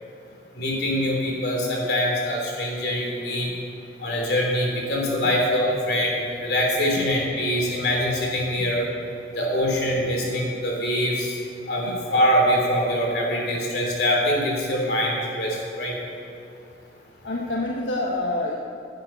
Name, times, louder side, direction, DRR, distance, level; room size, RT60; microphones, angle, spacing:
voice 1, 0.5-3.5 4.0-8.9 9.3-11.4 11.7-16.0, equal, 60° left, -2 dB, 3.3 m, -24 dB
voice 2, 17.2-18.6, left 2 dB, 80° left, -1 dB, 1.2 m, -27 dB
16.0 x 10.5 x 4.5 m, 2.7 s
head